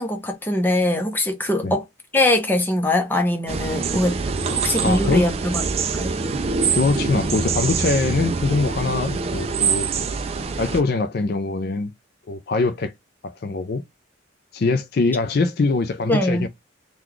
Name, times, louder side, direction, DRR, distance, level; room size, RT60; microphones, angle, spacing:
voice 1, 0.0-1.8 2.1-4.2 4.5-5.6 5.9-6.2 16.1-16.5, left 1 dB, 10° left, 0.7 m, -22 dB
sound 1, 3.5-10.8, right 5 dB, 30° right, 0.3 m, -25 dB
voice 2, 4.8-5.3 6.7-9.9 10.6-11.9 12.3-12.9 13.2-13.8 14.5-16.5, left 3 dB, 50° left, 0.4 m, -23 dB
3.8 x 2.3 x 3.0 m
head